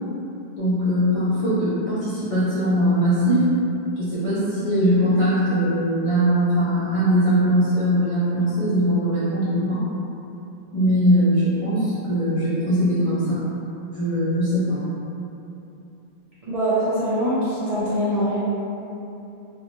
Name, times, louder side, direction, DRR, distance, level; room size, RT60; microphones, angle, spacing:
voice 1, 0.6-3.4 4.0-9.8 10.7-13.4 13.9-14.8, equal, 50° left, -13 dB, 0.4 m, -21 dB
voice 2, 16.5-18.4, equal, 60° right, -11 dB, 0.3 m, -23 dB
2.7 x 2.0 x 2.9 m, 2.9 s
omnidirectional pair, 1.2 m